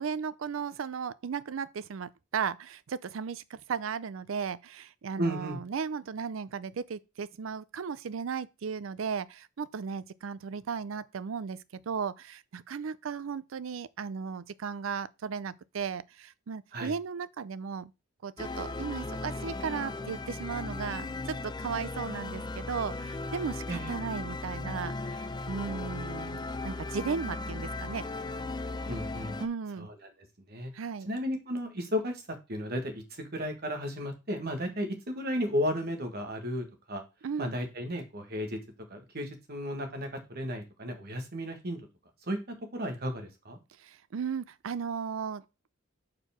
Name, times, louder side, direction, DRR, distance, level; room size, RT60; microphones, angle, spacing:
voice 1, 0.0-11.6 11.9-17.9 18.2-28.0 29.4-29.9 30.7-31.1 37.2-37.6 43.8-45.4, right 6 dB, 85° right, 0.4 m, -36 dB
voice 2, 5.2-5.6 16.7-16.9 23.7-23.9 28.9-29.4 29.8-29.9 30.5-30.7 31.1-32.2 32.5-37.0 37.4-38.6 38.9-41.8 42.3-42.4 42.7-43.6, equal, 55° right, 1.7 m, -34 dB
sound 1, 18.4-29.5, left 2 dB, 20° left, 0.4 m, -37 dB
4.9 x 4.6 x 5.8 m
head